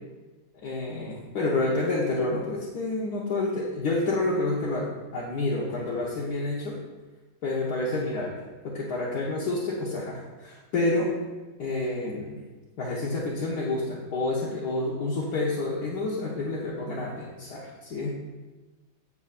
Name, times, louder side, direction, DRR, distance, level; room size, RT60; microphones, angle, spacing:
voice 1, 0.6-6.7 7.4-8.4 8.6-11.1 11.6-12.3 12.8-18.1, left 2 dB, 65° left, -6 dB, 1.6 m, -29 dB
8.4 x 7.9 x 2.5 m, 1.2 s
omnidirectional pair, 1.9 m